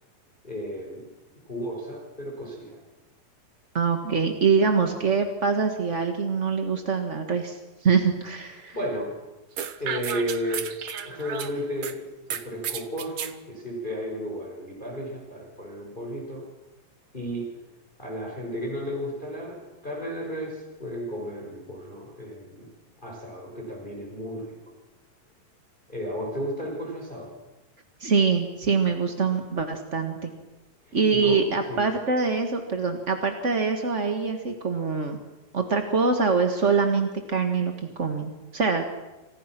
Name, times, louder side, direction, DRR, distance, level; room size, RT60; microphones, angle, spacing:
voice 1, 0.4-1.0 1.5-2.8 8.7-9.1 9.8-10.7 11.0-12.0 12.3-16.4 17.1-17.5 18.0-22.7 23.0-24.6 25.9-27.3 30.9-31.4 31.7-31.8, equal, 10° left, 0 dB, 5.4 m, -33 dB
voice 2, 3.7-8.8 28.0-30.3 30.9-35.2 35.5-37.7 38.0-38.9, right 5 dB, 40° right, 5 dB, 1.1 m, -24 dB
sound 1, 9.6-11.9 12.3-13.3, right 8 dB, 65° right, 1.3 m, -33 dB
28.5 x 26.0 x 6.1 m, 1.1 s
omnidirectional pair, 4.1 m